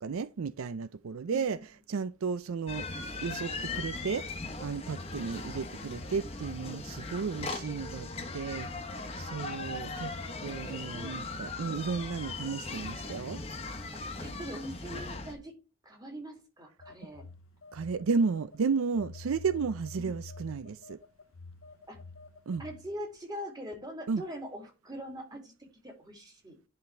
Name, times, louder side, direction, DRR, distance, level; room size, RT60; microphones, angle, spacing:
voice 1, 0.0-1.6 1.9-2.9 3.2-4.3 4.6-8.7 9.2-10.1 10.4-13.4 17.7-21.0 22.5-22.6 24.1-24.2, right 5 dB, 75° right, 0.4 m, -33 dB
voice 2, 1.3-1.6 10.6-11.2 13.9-15.6 15.8-17.3 19.9-20.2 21.9-22.0 22.6-25.5 25.8-26.6, equal, 20° right, 2.6 m, -42 dB
sound 1, 2.7-15.3, left 3 dB, 30° left, 1.1 m, -39 dB
Telephone, 16.8-18.6 18.9-23.0, left 2 dB, 70° left, 0.8 m, -48 dB
10.5 x 5.2 x 3.3 m
head